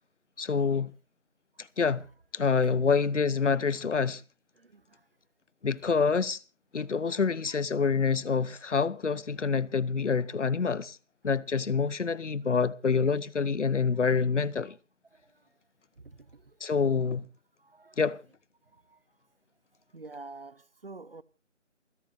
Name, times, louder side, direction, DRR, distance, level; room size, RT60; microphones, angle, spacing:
voice 1, 0.4-0.9 1.6-2.1 2.3-4.2 5.6-6.4 6.7-11.0 11.2-14.8 16.6-17.2 18.0-18.2, left 5 dB, 70° left, 0.9 m, -27 dB
voice 2, 19.9-21.2, right 3 dB, 50° right, 0.9 m, -46 dB
28.0 x 10.5 x 2.7 m
figure-of-eight pair, 175°, 37 cm